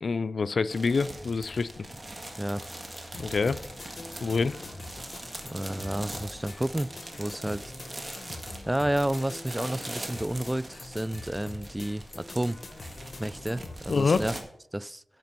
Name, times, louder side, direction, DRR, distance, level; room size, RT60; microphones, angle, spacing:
voice 1, 0.0-1.9 3.1-3.6 4.2-4.6 13.9-14.2, left 4 dB, 75° left, 0.4 m, -26 dB
sound 1, 0.7-14.4, right 1 dB, 35° right, 1.6 m, -42 dB
sound 2, 0.9-7.2, left 1 dB, 35° left, 3.4 m, -52 dB
sound 3, 3.1-13.8, left 3 dB, 60° left, 0.9 m, -45 dB
voice 2, 5.4-6.9 7.2-7.6 8.7-12.6 13.2-14.3 14.7-15.0, right 1 dB, 15° right, 0.3 m, -30 dB
9.4 x 5.1 x 5.9 m
wide cardioid pair, 60°, 0 cm